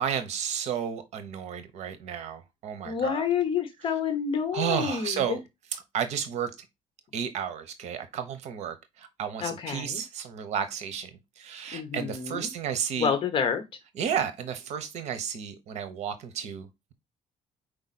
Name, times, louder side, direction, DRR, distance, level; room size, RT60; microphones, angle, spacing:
voice 1, 0.0-3.2 4.5-5.4 5.7-6.5 7.1-11.1 11.4-13.1 14.0-16.9, right 8 dB, 70° right, 0.9 m, -32 dB
voice 2, 2.8-5.4 9.4-10.0 11.7-12.5 13.0-13.6, left 7 dB, 45° left, 1.0 m, -28 dB
5.2 x 4.6 x 4.1 m
cardioid pair, 165°, 12 cm